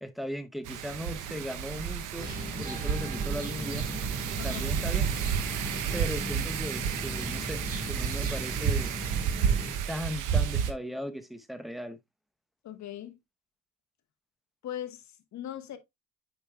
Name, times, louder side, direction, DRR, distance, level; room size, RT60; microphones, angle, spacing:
voice 1, 0.0-2.3 2.6-3.9 4.4-5.2 5.9-9.0 9.9-12.0, equal, ahead, 0.8 m, -37 dB
Wind, 0.7-10.7, right 8 dB, 90° right, 0.8 m, -31 dB
sound 1, 2.2-9.7, right 1 dB, 30° right, 2.6 m, -37 dB
voice 2, 4.4-4.8 12.6-13.2 14.6-15.8, left 11 dB, 65° left, 1.2 m, -40 dB
8.5 x 5.2 x 2.3 m
cardioid pair, 90°, 30 cm